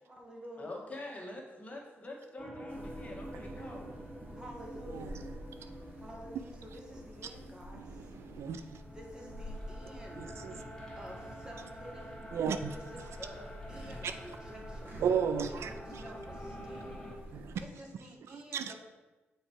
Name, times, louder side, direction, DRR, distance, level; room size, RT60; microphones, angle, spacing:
voice 1, 0.1-0.9 4.3-5.4 6.0-8.1 8.9-10.3 10.9-12.2 12.7-15.0 15.5-17.1 17.6-18.8, equal, 20° right, -1 dB, 1.8 m, -50 dB
voice 2, 0.6-3.9, left 2 dB, 30° left, -1 dB, 1.6 m, -45 dB
sound 1, 2.4-17.2, equal, 15° left, 1.6 m, -48 dB
sound 2, 2.7-17.6, equal, 50° right, 1.9 m, -49 dB
voice 3, 8.1-8.6 10.2-10.5 12.3-12.7 15.0-16.0 17.3-17.5 18.5-18.7, right 7 dB, 80° right, 10 dB, 0.4 m, -33 dB
6.5 x 4.5 x 4.7 m, 1.1 s
cardioid pair, 75°, 4 cm